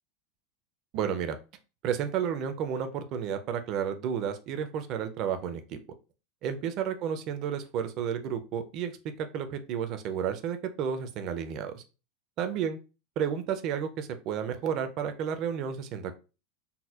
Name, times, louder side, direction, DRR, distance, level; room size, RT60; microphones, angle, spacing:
voice 1, 0.9-1.4 1.8-5.8 6.4-8.9 9.2-11.8 12.4-12.8 13.2-16.2, right 8 dB, 35° right, 8 dB, 0.4 m, -32 dB
4.1 x 2.1 x 2.3 m, 0.31 s
supercardioid pair, 175°, 0 cm